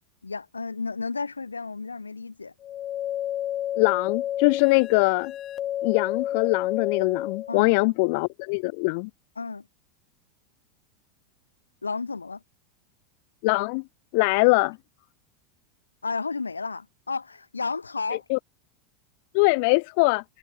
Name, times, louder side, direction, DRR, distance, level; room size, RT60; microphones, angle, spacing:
voice 1, 0.2-2.5 7.5-7.7 9.4-9.7 11.8-12.4 16.0-18.2, left 4 dB, 85° left, 6.0 m, -32 dB
sound 1, 2.6-7.5, left 11 dB, 35° left, 1.4 m, -30 dB
voice 2, 3.8-5.3 5.8-9.1 13.4-13.8 14.1-14.8 18.3-18.4 19.3-20.2, left 31 dB, 55° left, 1.8 m, -22 dB
figure-of-eight pair, 85°, 0 cm